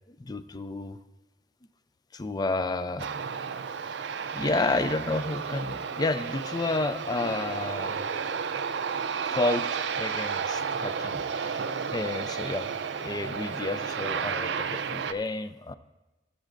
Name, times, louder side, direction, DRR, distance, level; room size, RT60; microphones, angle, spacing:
voice 1, 0.2-1.0 2.1-3.1 4.3-8.0 9.3-11.6 11.9-12.7 13.0-15.7, left 2 dB, 20° left, 12 dB, 0.4 m, -31 dB
Aircraft, 3.0-15.1, right 6 dB, 65° right, 0.4 m, -32 dB
16.5 x 7.5 x 2.6 m, 1.1 s
head